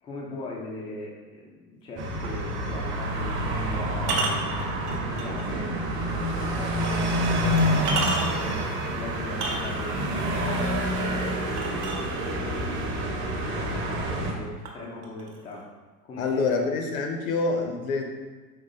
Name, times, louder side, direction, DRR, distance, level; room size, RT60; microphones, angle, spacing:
voice 1, 0.0-7.1 7.7-10.0 10.4-15.7 16.0-16.7, left 1 dB, 10° left, -3 dB, 0.4 m, -40 dB
sound 1, 2.0-14.3, equal, 25° right, 0.7 m, -28 dB
sound 2, 2.2-2.4 4.0-5.4 6.0-6.1 6.9-7.0 7.6-8.5 9.3-10.0 11.6-12.5 13.4-13.5 14.0-14.4 14.6-15.6, right 3 dB, 75° right, 0.9 m, -31 dB
voice 2, 16.2-18.0, left 4 dB, 60° left, 4 dB, 0.8 m, -26 dB
4.6 x 4.0 x 2.7 m, 1.3 s
figure-of-eight pair, 85°, 48 cm